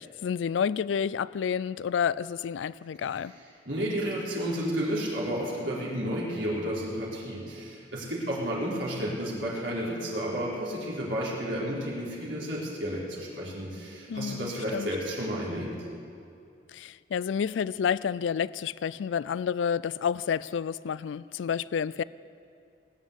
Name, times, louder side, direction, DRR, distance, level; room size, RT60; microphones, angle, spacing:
voice 1, 0.0-3.3 14.1-14.9 16.7-22.0, left 7 dB, 80° left, 19 dB, 0.3 m, -30 dB
voice 2, 3.0-3.3 3.6-15.7, equal, 85° right, -6 dB, 4.0 m, -32 dB
18.5 x 9.4 x 8.1 m, 2.5 s
head